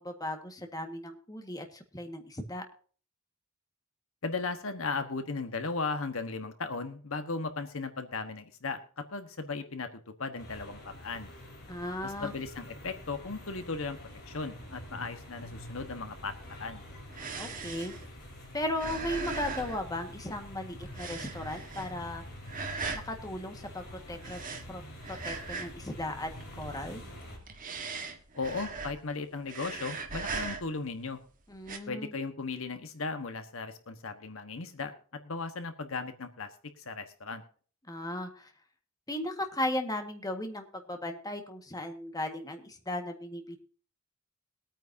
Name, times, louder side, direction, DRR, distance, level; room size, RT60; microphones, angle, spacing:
voice 1, 0.0-2.6 11.7-12.3 17.4-17.9 18.5-22.2 22.9-24.4 24.7-24.8 25.1-26.3 26.6-27.0 31.5-32.1 37.9-38.5 39.1-43.6, left 1 dB, 20° left, 4 dB, 1.7 m, -36 dB
voice 2, 4.2-9.9 10.2-11.3 12.0-14.0 14.3-16.3 16.6-16.8 28.3-31.2 31.9-34.9 35.2-36.5 36.8-37.4, left 4 dB, 70° left, 8 dB, 1.3 m, -36 dB
sound 1, 10.4-27.4, equal, 50° left, 4.7 m, -46 dB
sound 2, 16.4-20.5 20.8-22.1 22.4-23.1 24.1-25.9 26.2-26.8 27.3-29.1 29.4-30.9 31.6-31.8, right 4 dB, 40° right, 1.5 m, -39 dB
21.5 x 9.1 x 2.8 m, 0.43 s
head